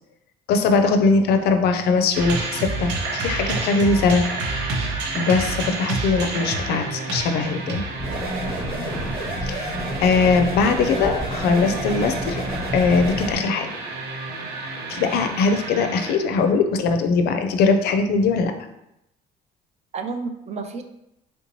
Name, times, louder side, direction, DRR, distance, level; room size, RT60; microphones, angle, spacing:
voice 1, 0.5-4.2 5.1-7.8 9.4-9.7 10.0-12.4 12.7-13.7 14.9-18.5, left 4 dB, 70° left, 7 dB, 0.4 m, -20 dB
sound 1, 2.1-16.5, right 3 dB, 85° right, 0.7 m, -30 dB
sound 2, 8.0-13.4, right 1 dB, 5° left, 1.1 m, -29 dB
voice 2, 8.4-8.8 19.9-20.8, right 4 dB, 40° right, 7 dB, 0.4 m, -32 dB
3.3 x 2.7 x 2.9 m, 0.83 s
cardioid pair, 110°, 17 cm